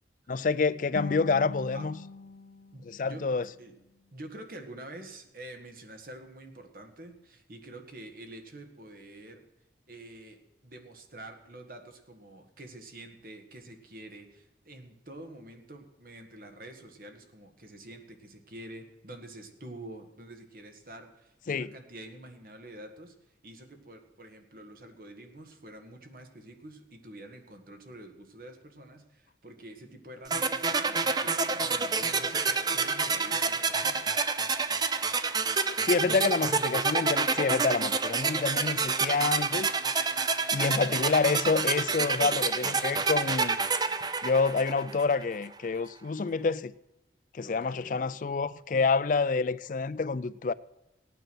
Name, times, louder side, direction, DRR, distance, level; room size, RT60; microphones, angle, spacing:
voice 1, 0.3-2.0 2.9-3.4 21.5-21.7 35.8-39.7 40.5-43.6 44.2-46.7 47.3-50.5, left 4 dB, 45° left, 0.4 m, -28 dB
sound 1, 0.9-4.1, left 4 dB, 70° left, 1.3 m, -43 dB
voice 2, 2.7-3.3 3.6-3.7 4.1-9.5 9.9-34.5 42.0-42.3 47.4-48.0, right 1 dB, 50° right, 1.7 m, -47 dB
sound 2, 30.3-45.2, right 4 dB, 25° right, 0.6 m, -28 dB
16.5 x 9.3 x 6.2 m
head